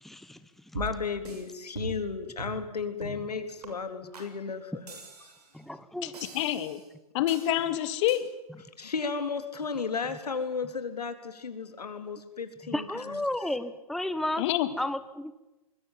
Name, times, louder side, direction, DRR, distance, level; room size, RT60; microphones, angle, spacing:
voice 1, 0.0-0.4 5.5-6.1 12.7-14.4 14.8-15.3, left 1 dB, ahead, 11 dB, 1.1 m, -32 dB
voice 2, 0.7-5.0 8.8-13.2, left 5 dB, 90° left, 8 dB, 3.6 m, -34 dB
sound 1, 0.7-1.4 1.8-2.1 2.4-2.6 3.0-3.3 3.6-3.7 4.1-4.3 4.9-5.5 6.1-6.9 7.3-7.6 8.1-8.2, right 3 dB, 80° right, 7.2 m, -40 dB
voice 3, 6.0-6.8 7.1-8.3 14.4-14.7, left 13 dB, 50° left, 12 dB, 2.1 m, -27 dB
25.0 x 21.0 x 9.1 m, 1.0 s
hypercardioid pair, 120°, 20 cm